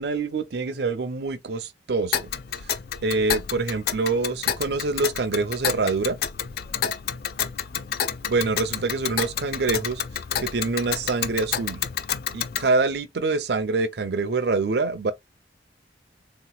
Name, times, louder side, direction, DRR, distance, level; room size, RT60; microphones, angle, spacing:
voice 1, 0.0-2.3 3.0-6.2 8.2-10.0 10.4-11.8 12.3-15.1, right 3 dB, 65° right, 0.6 m, -25 dB
Tick, 2.1-12.7, left 8 dB, 55° left, 0.4 m, -30 dB
3.6 x 2.9 x 2.3 m
head